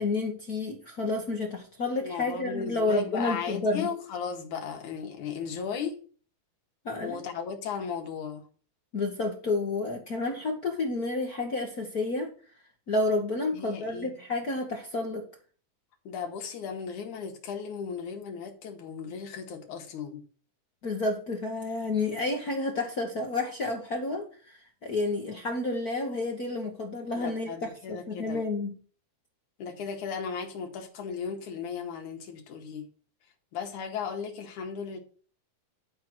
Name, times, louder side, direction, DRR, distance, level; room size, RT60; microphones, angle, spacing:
voice 1, 0.0-3.9 6.8-7.2 8.9-12.3 12.9-15.2 20.8-28.8, left 2 dB, 55° left, 1.0 m, -30 dB
voice 2, 2.0-6.0 7.0-8.4 13.5-14.2 16.0-20.2 27.2-28.4 29.6-32.8 33.5-35.0, left 6 dB, 70° left, 3.1 m, -36 dB
11.5 x 4.6 x 6.0 m
omnidirectional pair, 3.7 m